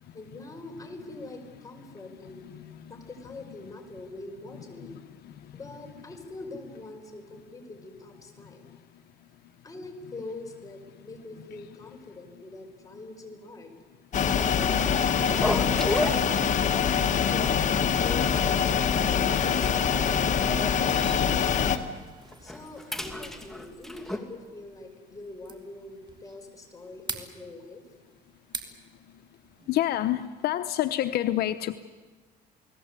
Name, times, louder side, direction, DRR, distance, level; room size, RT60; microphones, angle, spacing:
voice 1, 0.1-2.4 2.9-5.0 5.5-8.6 9.6-13.7 22.4-27.8, left 2 dB, 20° left, 3 dB, 5.4 m, -44 dB
voice 2, 2.3-2.9 4.8-5.3 29.7-31.8, left 13 dB, 70° left, 10 dB, 0.9 m, -29 dB
sound 1, 14.1-21.8, left 7 dB, 45° left, 1.7 m, -24 dB
sound 2, 15.3-16.9 17.2-17.4 17.7-17.8 18.4-18.9 19.2-21.3 21.6-21.8 22.2-24.2, left 1 dB, ahead, 2.5 m, -34 dB
sound 3, 21.7-30.1, right 4 dB, 25° right, 2.6 m, -46 dB
29.5 x 19.0 x 8.2 m, 1.4 s
cardioid pair, 110°, 17 cm